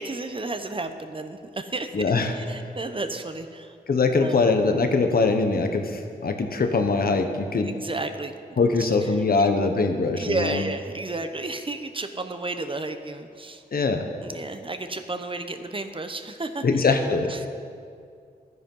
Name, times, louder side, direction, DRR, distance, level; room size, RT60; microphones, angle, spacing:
voice 1, 0.0-1.9 2.3-3.8 4.1-4.4 7.6-8.4 8.8-8.9 9.3-9.5 10.2-13.6 14.2-16.6 17.3-17.5, right 2 dB, 30° right, 8 dB, 0.9 m, -32 dB
voice 2, 1.9-2.3 3.9-7.7 8.6-10.6 13.7-14.0 16.6-17.3, left 4 dB, 60° left, 5 dB, 1.2 m, -22 dB
12.0 x 9.5 x 5.6 m, 2.3 s
cardioid pair, 60°, 17 cm